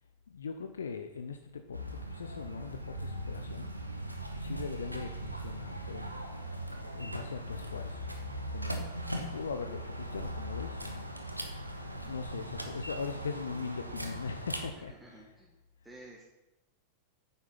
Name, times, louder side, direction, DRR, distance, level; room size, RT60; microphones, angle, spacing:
voice 1, 0.3-1.8 2.1-3.7 4.4-6.3 6.9-8.1 8.5-9.0 9.3-11.1 12.0-15.3, left 5 dB, 70° left, 8 dB, 0.6 m, -40 dB
sound 1, 1.7-14.7, right 1 dB, 90° right, 1.1 m, -39 dB
voice 2, 14.8-15.6 15.8-16.2, right 2 dB, 5° right, -3 dB, 1.8 m, -52 dB
9.7 x 7.9 x 5.7 m, 0.95 s
figure-of-eight pair, 90°, 0 cm